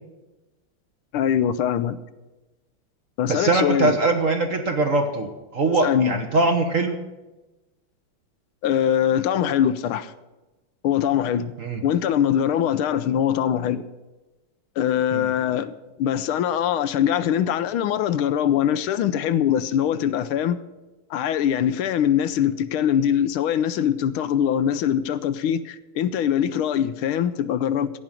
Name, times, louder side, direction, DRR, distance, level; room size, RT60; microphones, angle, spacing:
voice 1, 1.1-2.0 3.2-3.9 5.8-6.2 8.6-10.1 10.8-11.5 11.8-13.8 14.8-20.6 21.1-27.9, left 9 dB, 80° left, 1.5 m, -22 dB
voice 2, 3.3-7.0 11.6-11.8 15.1-15.3, right 3 dB, 45° right, 1.1 m, -22 dB
15.5 x 5.3 x 8.9 m
omnidirectional pair, 2.3 m